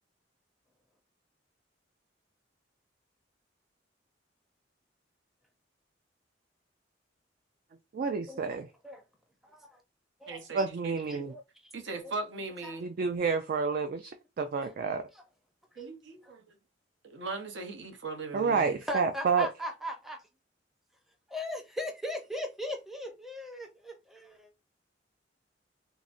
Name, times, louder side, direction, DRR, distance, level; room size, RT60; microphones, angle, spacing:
voice 1, 7.9-8.7 10.5-11.3 12.8-14.1 14.4-15.0 18.3-19.5, right 5 dB, 50° right, 0.3 m, -29 dB
voice 2, 9.4-9.8 10.2-10.4 11.1-11.4 12.6-12.8 14.6-14.7 15.1-15.2 15.8-16.3 18.9-20.2 21.3-24.5, left 1 dB, ahead, 0.6 m, -39 dB
voice 3, 10.3-11.2 11.7-12.9 15.8-16.6 17.0-18.8, right 3 dB, 70° right, 0.8 m, -39 dB
3.8 x 2.1 x 2.5 m
head